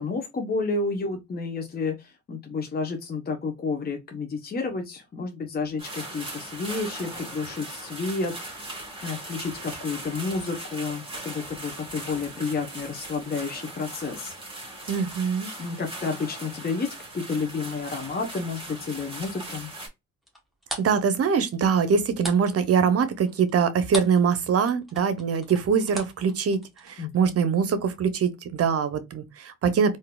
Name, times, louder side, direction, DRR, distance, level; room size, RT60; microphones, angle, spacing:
voice 1, 0.0-14.3 15.6-16.9 17.1-19.7 27.0-27.3, left 4 dB, 30° left, 0.8 m, -31 dB
sound 1, 5.8-19.9, right 1 dB, 15° right, 2.1 m, -39 dB
voice 2, 14.9-15.5 20.8-26.6 26.8-30.0, right 6 dB, 50° right, 0.7 m, -23 dB
sound 2, 20.3-24.3 24.5-26.9, equal, ahead, 1.3 m, -38 dB
3.8 x 2.6 x 2.2 m
cardioid pair, 90°, 30 cm